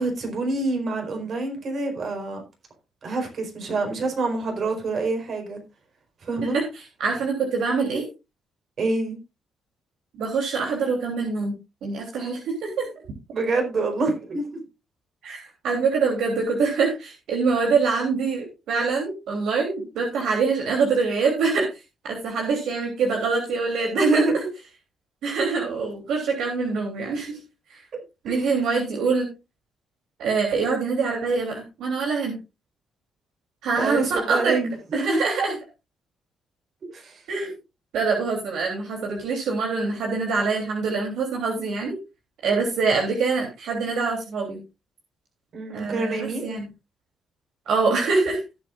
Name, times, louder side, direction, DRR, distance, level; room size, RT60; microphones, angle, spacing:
voice 1, 0.0-2.4 3.0-5.6 6.2-6.6 8.8-9.2 13.3-14.6 24.0-24.4 28.3-28.6 33.7-35.2 36.9-37.2 45.5-46.5, right 3 dB, 55° right, 4.5 m, -26 dB
voice 2, 6.4-8.1 10.1-11.6 11.8-12.9 15.2-24.2 25.2-27.4 27.7-27.8 28.2-29.3 30.2-32.3 33.6-34.6 34.9-35.6 37.3-37.5 37.9-42.0 42.4-44.6 45.7-46.6 47.7-48.4, right 4 dB, 80° right, 3.3 m, -24 dB
17.5 x 7.8 x 2.5 m
cardioid pair, 90°, 0 cm